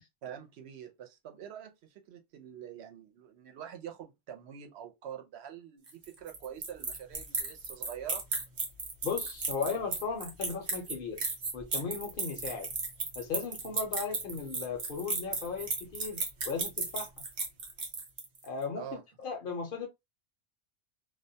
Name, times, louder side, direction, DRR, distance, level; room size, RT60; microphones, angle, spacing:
voice 1, 0.2-8.2 18.7-19.0, right 9 dB, 85° right, 0.8 m, -45 dB
sound 1, 5.9-18.5, right 4 dB, 50° right, 0.8 m, -35 dB
voice 2, 9.0-11.2 11.5-12.7 13.2-17.1 18.4-19.9, left 5 dB, 60° left, 0.8 m, -36 dB
2.3 x 2.1 x 2.6 m
omnidirectional pair, 1.1 m